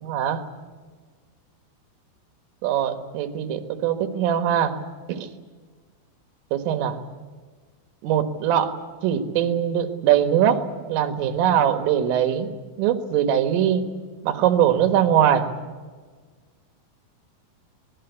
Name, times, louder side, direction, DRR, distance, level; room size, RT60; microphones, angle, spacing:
voice 1, 0.0-0.4 2.6-4.8 5.1-5.3 6.5-7.0 8.0-8.7 9.0-10.6 10.9-12.5 12.8-13.9 14.2-15.5, right 10 dB, 75° right, 9 dB, 4.0 m, -21 dB
25.5 x 19.5 x 8.2 m, 1.5 s
omnidirectional pair, 5.9 m